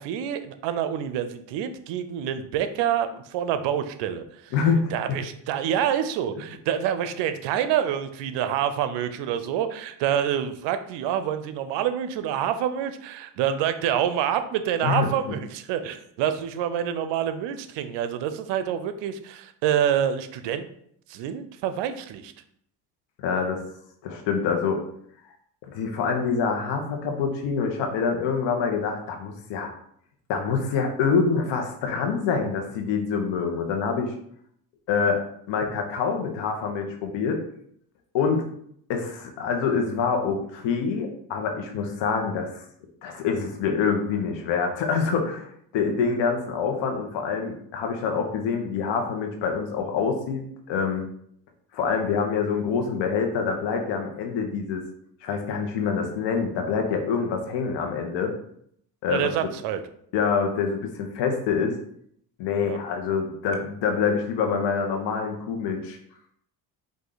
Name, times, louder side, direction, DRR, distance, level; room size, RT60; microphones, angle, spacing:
voice 1, 0.0-4.5 4.9-20.7 21.1-22.3 59.1-59.8 62.6-62.8, right 9 dB, 80° right, 11 dB, 0.6 m, -27 dB
voice 2, 4.5-4.9 14.8-15.1 23.2-23.6 24.0-24.8 25.7-29.7 30.3-34.1 34.9-35.2 35.5-37.4 38.1-38.4 38.9-42.6 43.0-51.0 51.7-54.8 55.2-58.3 59.0-59.3 60.1-61.7 62.4-66.0, left 5 dB, 80° left, 3 dB, 1.1 m, -26 dB
5.0 x 2.7 x 3.9 m, 0.67 s
cardioid pair, 105°, 42 cm